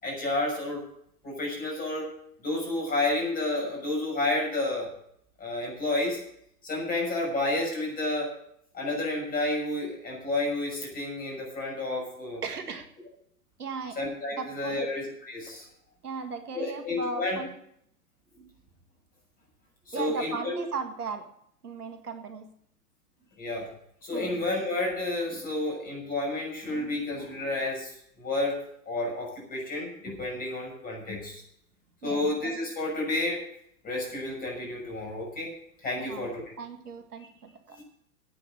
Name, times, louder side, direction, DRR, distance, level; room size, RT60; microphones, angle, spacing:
voice 1, 0.0-0.9 1.2-2.1 2.4-4.9 5.4-6.2 6.6-8.3 8.7-12.4 14.0-15.6 16.5-17.4 19.9-20.6 23.4-23.7 24.0-28.6 28.9-31.4 32.0-33.4 33.8-35.5 35.8-36.5 37.7-37.8, left 2 dB, 20° left, -1 dB, 6.5 m, -30 dB
voice 2, 12.4-12.9 13.6-14.0 14.3-15.0 16.0-17.6 19.9-21.3 21.6-22.5 24.1-24.4 32.0-32.3 36.0-36.3 36.6-37.8, right 4 dB, 80° right, 6 dB, 1.9 m, -36 dB
9.2 x 9.2 x 8.7 m, 0.70 s
figure-of-eight pair, 110°, 45 cm